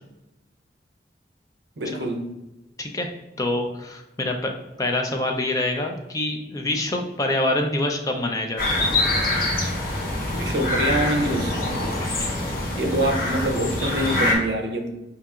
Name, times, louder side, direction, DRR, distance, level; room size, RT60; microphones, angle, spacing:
voice 1, 1.8-2.3 10.4-11.6 12.8-14.9, right 1 dB, 75° right, 4 dB, 0.6 m, -25 dB
voice 2, 3.4-4.5 4.8-8.8 12.0-12.3, left 1 dB, 20° left, 3 dB, 0.4 m, -26 dB
sound 1, 8.6-14.4, left 2 dB, 50° left, 0.9 m, -24 dB
5.3 x 2.8 x 2.4 m, 1.0 s
head